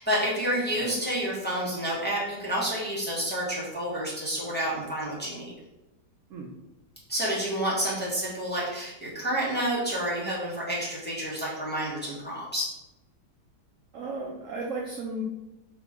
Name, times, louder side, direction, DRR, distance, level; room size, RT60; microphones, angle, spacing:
voice 1, 0.0-5.5 7.1-12.6, right 1 dB, 5° left, -7 dB, 1.2 m, -29 dB
voice 2, 13.9-15.2, right 2 dB, 65° right, -1 dB, 0.8 m, -35 dB
5.0 x 2.8 x 3.6 m, 0.97 s
omnidirectional pair, 1.9 m